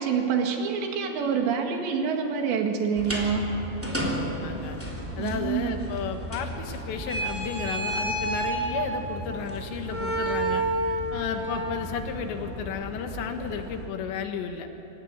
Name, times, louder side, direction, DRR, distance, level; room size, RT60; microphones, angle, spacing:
voice 1, 0.0-3.4 5.2-5.8, right 6 dB, 80° right, 3 dB, 4.2 m, -26 dB
sound 1, 3.0-13.9, right 1 dB, 5° right, 2.3 m, -31 dB
voice 2, 4.0-4.8 5.2-14.7, left 6 dB, 85° left, 5 dB, 3.9 m, -33 dB
25.5 x 16.5 x 9.8 m, 2.8 s
omnidirectional pair, 5.0 m